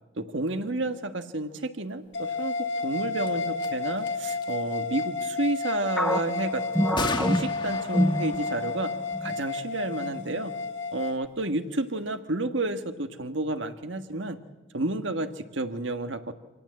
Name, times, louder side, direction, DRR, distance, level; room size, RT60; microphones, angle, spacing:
voice 1, 0.2-2.5 2.8-8.9 9.2-10.5 10.9-14.4 14.7-16.3, right 2 dB, 75° right, 9 dB, 1.5 m, -31 dB
sound 1, 2.1-11.2, left 4 dB, 65° left, 1.8 m, -32 dB
sound 2, 3.3-3.4 3.6-3.7 4.0-4.5 7.0-10.3, left 3 dB, 25° left, 1.2 m, -37 dB
sound 3, 6.0-8.8 9.1-9.3 10.0-10.4, equal, 5° left, 0.8 m, -27 dB
25.5 x 18.0 x 7.8 m, 1.2 s
head